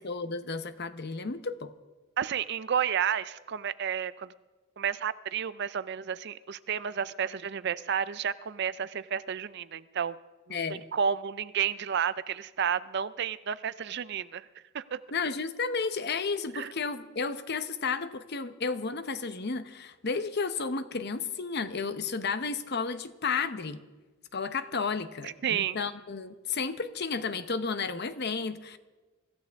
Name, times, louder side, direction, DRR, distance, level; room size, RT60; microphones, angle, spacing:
voice 1, 0.0-1.7 10.5-10.9 15.1-23.8 24.3-28.8, left 4 dB, 50° left, 11 dB, 0.8 m, -32 dB
voice 2, 2.2-4.3 4.8-10.2 10.5-10.6 10.9-14.5 14.7-15.0 16.5-16.7 25.4-25.8, right 8 dB, 50° right, 16 dB, 0.4 m, -31 dB
24.5 x 15.0 x 3.6 m, 1.2 s
head